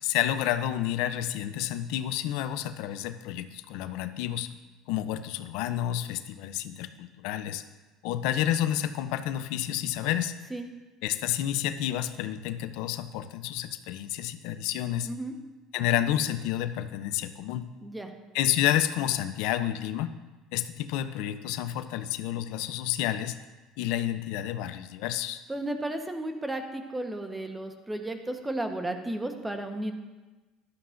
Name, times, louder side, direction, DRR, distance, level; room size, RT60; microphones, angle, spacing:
voice 1, 0.0-4.5 4.9-7.6 8.0-10.3 11.0-15.1 15.7-17.7 18.3-20.1 20.5-23.4 23.8-25.4, left 12 dB, 75° left, 11 dB, 0.5 m, -30 dB
voice 2, 17.8-18.1 25.5-29.9, right 1 dB, 10° right, 5 dB, 1.0 m, -33 dB
11.5 x 11.0 x 2.5 m, 1.2 s
supercardioid pair, 115°, 0 cm